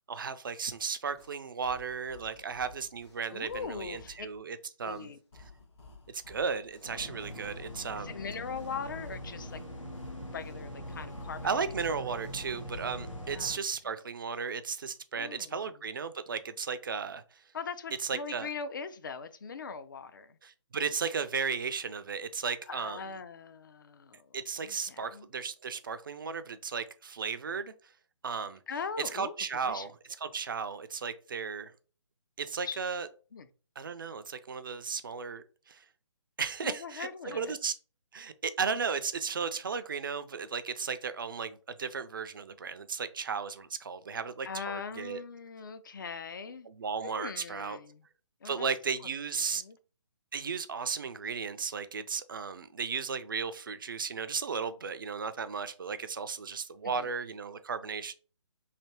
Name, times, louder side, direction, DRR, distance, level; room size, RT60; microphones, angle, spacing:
voice 1, 0.1-5.1 6.1-8.1 11.4-17.4 18.0-18.5 20.4-23.0 24.3-27.7 28.2-28.6 29.1-29.9 30.2-31.7 32.4-33.1 33.8-35.8 36.4-37.7 38.1-45.2 46.7-47.8 48.4-49.6 50.3-58.1, right 5 dB, 45° right, 0.4 m, -35 dB
sound 1, 0.7-0.8 1.2-4.4 4.9-8.1 8.5-11.8 12.2-13.1, left 3 dB, 60° left, 1.3 m, -55 dB
voice 2, 3.3-4.3 4.8-5.2 8.0-9.6 10.3-11.6 13.3-13.6 15.1-15.6 17.5-20.4 22.7-25.3 28.7-29.3 29.6-29.9 32.6-32.8 33.3-33.5 36.6-37.6 44.4-46.7 47.0-48.0 48.4-48.7 49.5-49.8 56.8-57.1, left 5 dB, 40° left, 0.4 m, -41 dB
sound 2, 6.8-13.5, equal, 85° left, 1.1 m, -42 dB
3.3 x 2.7 x 4.3 m
figure-of-eight pair, 140°, 16 cm